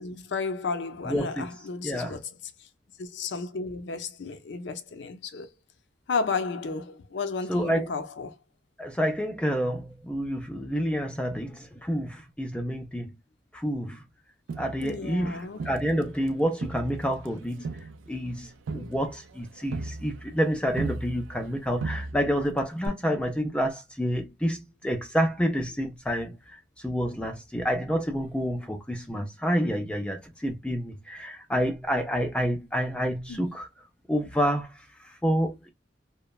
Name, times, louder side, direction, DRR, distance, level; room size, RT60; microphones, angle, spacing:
voice 1, 0.0-2.3 2.6-2.7 3.0-5.5 6.1-8.4 14.8-15.6 33.3-33.5, left 4 dB, 70° left, 0.5 m, -33 dB
voice 2, 1.1-1.5 1.8-2.2 7.5-7.9 8.8-13.1 13.5-14.0 14.6-17.7 18.1-33.7 34.1-35.7, equal, 5° left, 0.3 m, -29 dB
Crowd, 14.5-16.3 16.6-21.5 21.8-22.5 22.9-23.0, right 3 dB, 90° right, 0.4 m, -37 dB
3.0 x 2.1 x 2.2 m
head